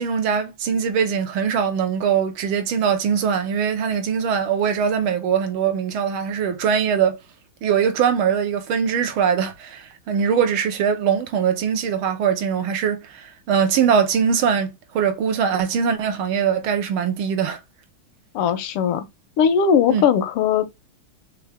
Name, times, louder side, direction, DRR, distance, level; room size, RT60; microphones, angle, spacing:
voice 1, 0.0-7.2 7.6-17.6 19.9-20.0, right 7 dB, 75° right, 1.7 m, -22 dB
voice 2, 18.3-19.1 19.4-20.7, left 7 dB, 85° left, 1.7 m, -19 dB
4.4 x 3.5 x 3.4 m
omnidirectional pair, 2.4 m